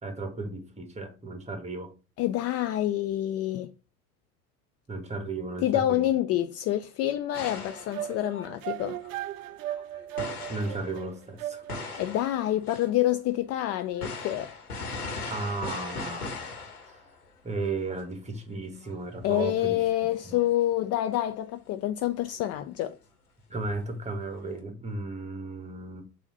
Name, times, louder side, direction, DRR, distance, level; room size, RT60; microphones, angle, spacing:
voice 1, 0.0-1.9 4.9-6.1 10.5-11.6 15.3-16.4 16.8-17.0 17.4-19.8 20.2-20.4 23.5-26.0, right 3 dB, 15° right, 1.6 m, -35 dB
voice 2, 2.2-3.7 5.6-9.0 11.9-14.5 19.2-23.0, left 13 dB, 35° left, 0.5 m, -27 dB
sound 1, 7.3-11.1 11.6-12.9 13.1-13.2 14.0-17.3 17.6-17.7 18.0-18.1 18.8-18.9 19.2-19.5 19.8-21.2 22.9-23.0 24.3-24.5, left 3 dB, 85° left, 1.5 m, -39 dB
sound 2, 7.5-12.0, right 13 dB, 65° right, 0.5 m, -37 dB
7.1 x 2.9 x 5.5 m
figure-of-eight pair, 75°, 44 cm